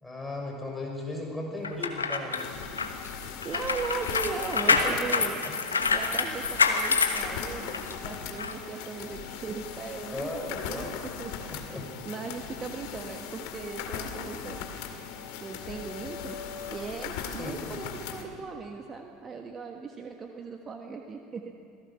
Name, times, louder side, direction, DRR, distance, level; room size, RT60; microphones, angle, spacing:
voice 1, 0.0-2.4 4.7-5.5 10.1-10.9 11.4-11.9 17.4-17.6, left 2 dB, 10° left, -1 dB, 6.0 m, -36 dB
sound 1, 1.6-7.9 8.4-8.5, left 4 dB, 90° left, 1.2 m, -27 dB
sound 2, 2.4-18.2, left 7 dB, 65° left, 2.1 m, -39 dB
voice 2, 3.4-5.4 5.8-10.9 11.2-11.3 12.0-14.6 15.4-16.4 16.7-21.5, right 5 dB, 30° right, 3 dB, 1.5 m, -38 dB
27.5 x 17.5 x 5.9 m, 2.6 s
figure-of-eight pair, 70°, 0 cm